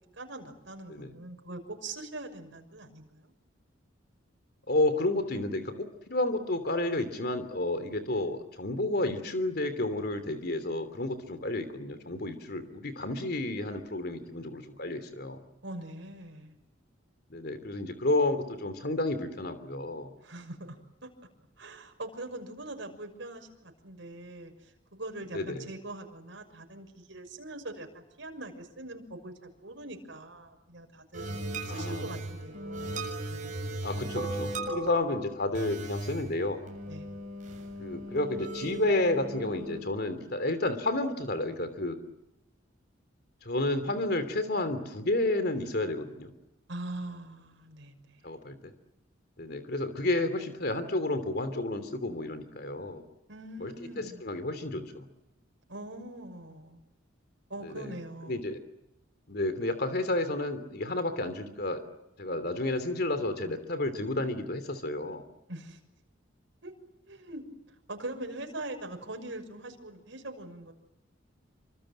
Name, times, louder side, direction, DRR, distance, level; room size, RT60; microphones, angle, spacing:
voice 1, 0.1-3.3 15.6-16.6 20.2-21.1 21.6-31.3 31.6-33.6 36.9-37.1 46.7-48.2 53.3-54.2 55.7-56.8 57.5-58.4 65.5-65.8 66.6-66.7 67.1-67.4 67.9-70.7, right 2 dB, 70° right, 4 dB, 6.3 m, -42 dB
voice 2, 4.7-15.4 17.3-20.1 25.3-25.6 31.7-32.1 33.8-36.6 37.8-42.0 43.4-46.3 48.2-48.6 49.4-53.0 53.6-55.1 57.6-57.9 58.3-58.6 59.3-61.8 62.2-65.2, left 2 dB, 55° left, 10 dB, 3.0 m, -31 dB
sound 1, 31.1-39.8, right 1 dB, 40° right, 7.4 m, -37 dB
28.5 x 25.5 x 7.7 m, 0.93 s
head